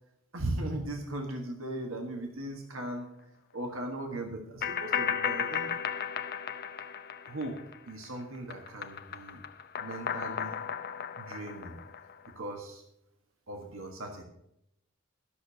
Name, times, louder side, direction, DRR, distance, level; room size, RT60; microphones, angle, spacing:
voice 1, 0.3-3.1 3.5-5.7 7.2-7.6 7.9-9.4 9.8-10.6 11.2-11.8 12.3-12.8 13.5-14.2, right 1 dB, 85° right, 3 dB, 1.6 m, -38 dB
sound 1, 4.6-8.0 8.3-12.3, left 7 dB, 50° left, 0.7 m, -35 dB
12.0 x 6.8 x 6.8 m, 0.78 s
head